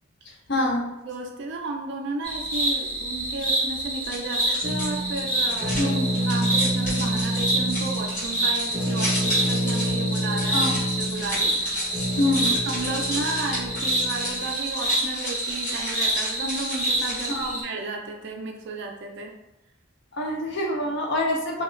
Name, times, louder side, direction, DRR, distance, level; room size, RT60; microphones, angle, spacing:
voice 1, 0.5-0.9 5.8-6.1 10.5-10.8 12.2-12.6 17.3-17.6 20.1-21.6, left 1 dB, 50° left, 0 dB, 0.4 m, -26 dB
voice 2, 1.0-10.7 11.0-12.3 12.7-19.3, right 3 dB, 50° right, 2 dB, 0.4 m, -33 dB
sound 1, 2.2-17.6, right 1 dB, 70° left, 1.0 m, -28 dB
sound 2, 4.0-17.5, left 1 dB, 35° left, 1.2 m, -34 dB
sound 3, 4.6-14.5, equal, 5° right, 0.8 m, -29 dB
2.3 x 2.3 x 3.0 m, 0.92 s
head